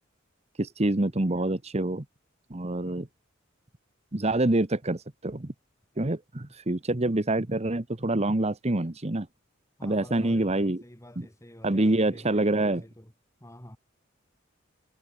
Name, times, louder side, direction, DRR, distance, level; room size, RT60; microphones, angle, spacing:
voice 1, 0.6-2.0 2.5-3.1 4.1-5.5 6.0-9.3 9.8-10.8 11.2-11.3 11.6-12.8, right 2 dB, 30° right, 1.2 m, -26 dB
voice 2, 9.8-13.1 13.4-13.8, left 1 dB, 15° left, 3.8 m, -48 dB
head